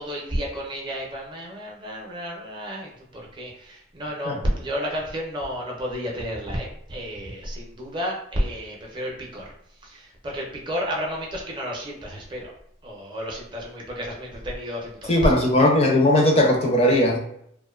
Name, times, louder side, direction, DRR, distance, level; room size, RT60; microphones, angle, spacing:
voice 1, 0.0-9.4 9.8-12.5 12.8-15.4, equal, 25° right, -1 dB, 0.5 m, -31 dB
voice 2, 15.1-17.2, left 1 dB, 30° left, 0 dB, 0.5 m, -18 dB
2.5 x 2.1 x 2.3 m, 0.70 s
head